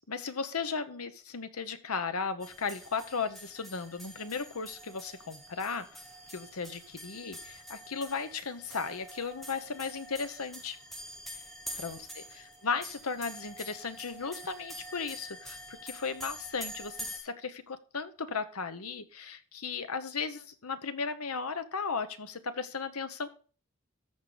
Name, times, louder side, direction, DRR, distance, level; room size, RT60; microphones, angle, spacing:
voice 1, 0.1-6.0 6.3-10.8 11.8-23.3, left 5 dB, 80° left, 10 dB, 1.0 m, -36 dB
sound 1, 2.4-17.2, equal, ahead, 1.1 m, -46 dB
14.0 x 4.9 x 4.0 m, 0.38 s
head